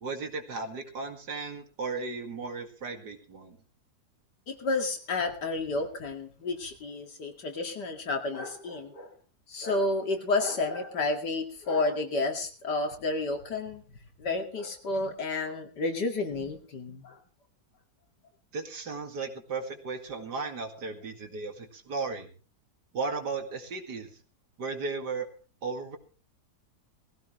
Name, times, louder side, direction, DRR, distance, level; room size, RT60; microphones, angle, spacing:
voice 1, 0.0-3.6 18.5-22.3 22.9-24.2 24.6-25.3 25.6-26.0, right 4 dB, 80° right, 5 dB, 2.6 m, -35 dB
voice 2, 4.5-9.1 9.5-13.8 14.2-17.2, left 3 dB, 85° left, 4 dB, 2.8 m, -31 dB
19.5 x 15.5 x 3.2 m, 0.34 s
omnidirectional pair, 1.8 m